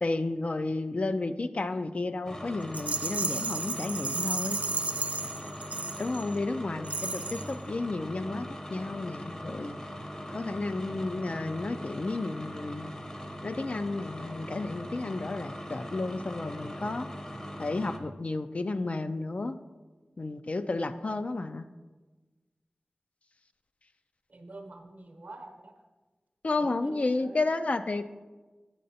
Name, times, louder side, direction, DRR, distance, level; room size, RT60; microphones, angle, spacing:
voice 1, 0.0-4.6 6.0-9.8 10.3-12.9 13.4-17.1 17.6-19.6 20.2-21.7 26.4-28.0, left 2 dB, 50° left, 10 dB, 0.3 m, -32 dB
sound 1, 2.3-18.0, equal, 25° left, 0.8 m, -41 dB
Rattle, 2.7-6.4 6.8-7.5, right 3 dB, 50° right, 0.4 m, -33 dB
voice 2, 6.6-7.1 24.3-25.7 26.6-27.4, right 2 dB, 65° right, 4 dB, 0.8 m, -47 dB
8.7 x 6.5 x 2.7 m, 1.3 s
wide cardioid pair, 55°, 3 cm